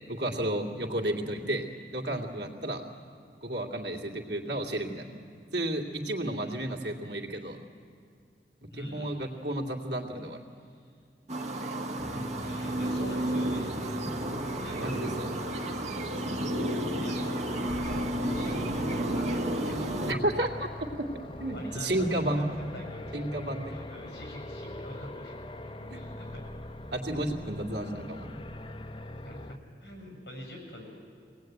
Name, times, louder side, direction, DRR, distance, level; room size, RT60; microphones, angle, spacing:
voice 1, 0.1-1.6 1.9-2.8 3.4-5.2 5.5-7.6 8.7-10.4 13.9-14.1 14.8-15.3 20.1-20.7 21.4-22.5 23.1-23.7 25.9-26.0 26.9-28.4, right 1 dB, 80° right, 1 dB, 2.5 m, -32 dB
voice 2, 8.7-9.2 10.5-10.9 11.6-14.2 14.6-14.9 17.0-20.1 21.5-23.2 23.6-25.4 25.6-26.5 27.1-27.2 27.7-27.8 29.2-30.9, left 1 dB, 65° left, 1 dB, 6.9 m, -46 dB
sound 1, 11.3-20.1, right 1 dB, 40° right, 1.6 m, -31 dB
sound 2, 12.0-29.6, left 1 dB, 30° left, 0.7 m, -42 dB
23.5 x 18.5 x 9.3 m, 2.3 s
head